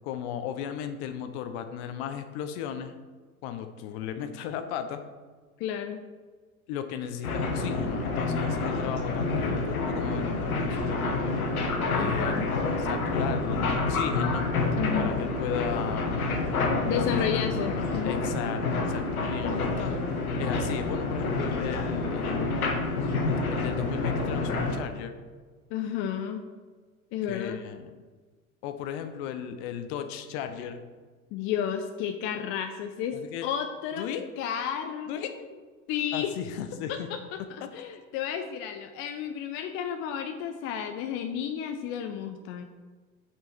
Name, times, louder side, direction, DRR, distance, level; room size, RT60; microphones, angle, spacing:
voice 1, 0.0-2.9 3.4-5.0 6.7-11.4 11.9-12.5 12.8-14.4 15.0-16.3 16.9-22.8 23.5-25.1 27.3-27.9 28.6-30.8 33.1-33.5 34.0-34.3 35.1-35.3 36.1-37.1, left 9 dB, 45° left, 9 dB, 0.8 m, -36 dB
voice 2, 5.6-6.0 12.0-12.6 14.8-15.1 16.9-18.2 25.7-26.4 27.1-27.6 31.3-33.2 33.4-34.1 34.4-35.3 35.9-36.3 36.9-37.2 37.5-42.6, left 8 dB, 30° left, 6 dB, 0.4 m, -32 dB
sound 1, 7.2-24.8, left 3 dB, 75° left, 1.2 m, -28 dB
5.7 x 5.4 x 4.5 m, 1.4 s
figure-of-eight pair, 85°, 44 cm